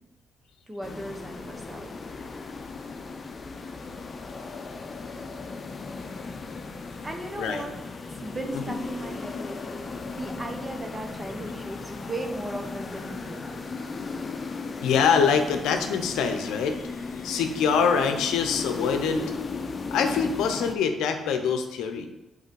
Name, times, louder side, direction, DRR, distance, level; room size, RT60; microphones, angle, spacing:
voice 1, 0.7-1.9 7.0-7.8 8.1-13.7, right 1 dB, 25° right, 4 dB, 1.1 m, -37 dB
sound 1, 0.8-20.8, left 4 dB, 45° left, 0.6 m, -36 dB
voice 2, 14.8-19.2 19.9-22.1, left 6 dB, 85° left, 6 dB, 0.6 m, -24 dB
5.6 x 4.1 x 4.7 m, 1.1 s
supercardioid pair, 60°, 0 cm